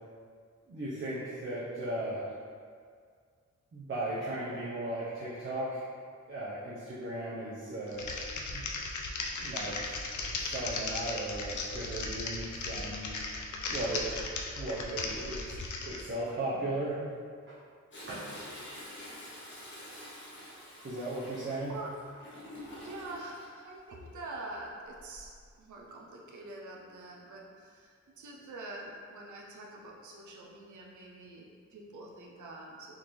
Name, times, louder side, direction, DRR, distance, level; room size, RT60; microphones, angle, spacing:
voice 1, 0.7-2.3 3.7-5.8 6.3-8.0 8.5-8.6 9.4-10.0 10.4-13.1 13.7-14.1 14.5-15.4 15.8-17.0 17.5-17.6 18.1-18.3 20.8-21.8, right 1 dB, 45° right, -10 dB, 0.6 m, -36 dB
Typing, 7.9-16.1, left 3 dB, 85° left, 0.5 m, -37 dB
Toilet flush, 17.9-23.5 24.9-25.4 25.9-26.0, left 1 dB, 40° left, 0.8 m, -47 dB
voice 2, 22.8-32.9, right 2 dB, 90° right, -2 dB, 0.6 m, -45 dB
3.7 x 2.5 x 3.1 m, 2.1 s
wide cardioid pair, 145°, 29 cm